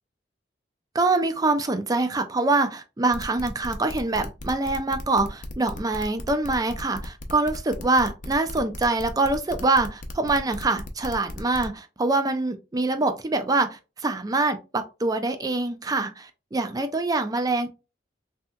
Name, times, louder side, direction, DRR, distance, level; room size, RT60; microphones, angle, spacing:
voice 1, 0.9-17.7, right 3 dB, 20° right, 0.4 m, -25 dB
sound 1, 3.1-11.7, left 2 dB, 45° left, 0.5 m, -38 dB
3.3 x 2.8 x 2.3 m
head